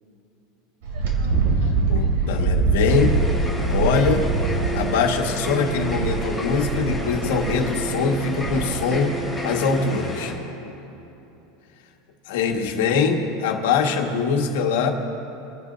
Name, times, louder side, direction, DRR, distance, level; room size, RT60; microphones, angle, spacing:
Wind, 0.8-9.0, right 3 dB, 75° right, 2.9 m, -24 dB
voice 1, 1.9-3.2 3.7-4.3 4.7-9.2 9.4-10.3 12.3-14.9, left 5 dB, 85° left, 2 dB, 1.7 m, -23 dB
sound 1, 2.9-10.3, right 1 dB, ahead, 2.7 m, -30 dB
27.0 x 11.0 x 2.7 m, 3.0 s
supercardioid pair, 170°, 0 cm